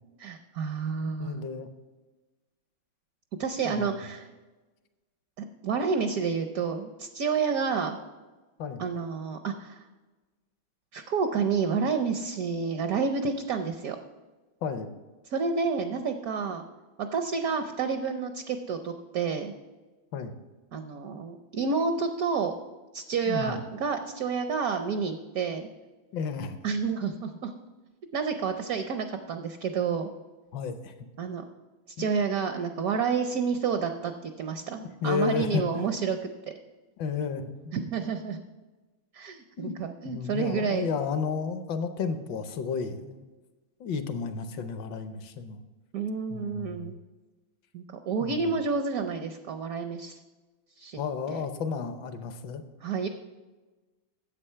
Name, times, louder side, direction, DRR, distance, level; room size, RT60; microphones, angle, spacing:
voice 1, 0.2-1.4 3.4-4.3 5.4-8.0 8.8-9.8 10.9-14.0 15.3-16.6 17.0-19.5 20.7-22.5 22.9-25.7 26.6-27.5 28.1-30.1 31.2-31.4 32.0-36.2 37.7-38.4 39.1-40.9 45.9-46.9 47.7-50.2 50.8-51.0 51.3-51.4 52.8-53.1, right 5 dB, 70° right, 7 dB, 0.8 m, -29 dB
voice 2, 1.2-1.7 3.6-4.0 8.6-8.8 14.6-14.9 20.1-20.4 23.3-23.6 26.1-26.6 30.5-30.9 32.0-32.1 34.8-35.9 37.0-37.8 39.6-39.8 40.0-43.2 43.8-45.6 46.3-46.9 48.2-48.5 51.0-52.6, left 5 dB, 70° left, 9 dB, 1.4 m, -32 dB
9.8 x 7.8 x 5.6 m, 1.2 s
omnidirectional pair, 2.2 m